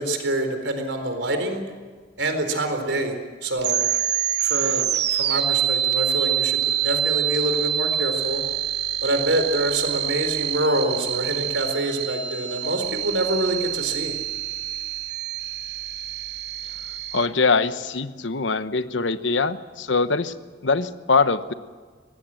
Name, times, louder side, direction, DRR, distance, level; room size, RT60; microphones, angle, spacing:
voice 1, 0.0-1.6 2.2-3.8 4.4-8.4 9.0-14.2, right 1 dB, 80° right, 6 dB, 4.2 m, -26 dB
sound 1, 3.6-17.3, right 11 dB, 60° right, 1.1 m, -26 dB
voice 2, 17.1-20.3 20.6-21.5, left 4 dB, 80° left, 12 dB, 1.0 m, -22 dB
24.0 x 19.0 x 7.7 m, 1.5 s
head